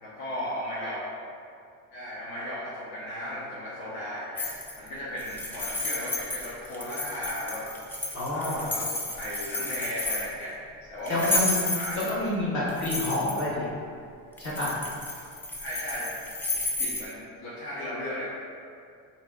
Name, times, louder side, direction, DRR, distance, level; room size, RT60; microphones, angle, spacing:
voice 1, 0.0-1.0 1.9-4.5 4.8-7.7 8.3-10.5 10.9-11.3 11.7-12.0 15.6-16.1 16.5-18.2, equal, 60° left, -8 dB, 0.8 m, -36 dB
sound 1, 4.4-4.9 5.2-10.4 11.1-12.3 12.7-13.4 14.4-17.0, left 2 dB, 5° left, 0.3 m, -32 dB
voice 2, 8.1-8.6 11.1-11.7 12.1-13.7 14.4-14.7, left 1 dB, 80° left, -9 dB, 1.3 m, -28 dB
2.8 x 2.1 x 3.4 m, 2.3 s
supercardioid pair, 80°, 40 cm